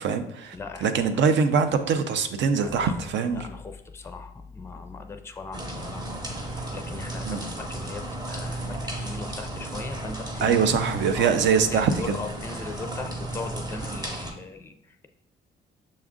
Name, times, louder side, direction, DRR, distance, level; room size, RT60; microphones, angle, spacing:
voice 1, 0.0-0.6 0.8-3.4 7.3-7.5 10.4-12.2, right 6 dB, 65° right, 9 dB, 0.5 m, -23 dB
voice 2, 0.5-1.2 2.6-3.0 3.3-10.7 11.1-15.1, left 3 dB, 15° left, 6 dB, 0.4 m, -39 dB
sound 1, 5.5-14.3, right 1 dB, 20° right, 0.8 m, -34 dB
6.2 x 2.4 x 3.6 m, 0.75 s
cardioid pair, 90°, 20 cm